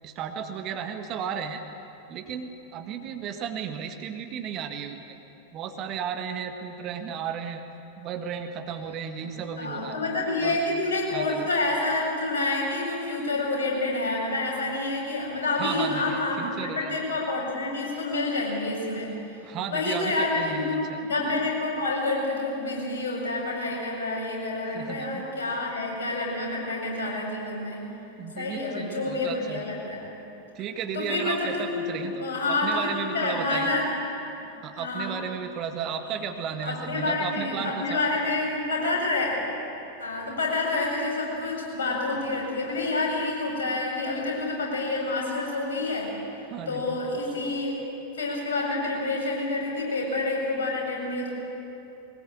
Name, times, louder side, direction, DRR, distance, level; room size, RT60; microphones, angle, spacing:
voice 1, 0.0-1.6 2.1-5.0 5.5-7.6 8.0-10.0 10.4-10.6 11.1-11.5 15.6-17.0 19.4-21.0 24.7-25.3 28.2-29.6 30.6-33.7 34.6-38.0 46.5-47.1, right 7 dB, 35° right, 6 dB, 1.8 m, -34 dB
voice 2, 9.6-19.2 19.7-27.9 28.4-30.0 30.9-33.9 34.4-34.5 34.8-35.2 36.6-39.4 40.0-46.2 46.7-47.7 48.2-51.3, left 2 dB, 65° left, -2 dB, 6.9 m, -28 dB
22.0 x 20.0 x 8.8 m, 2.9 s
figure-of-eight pair, 90°, 0 cm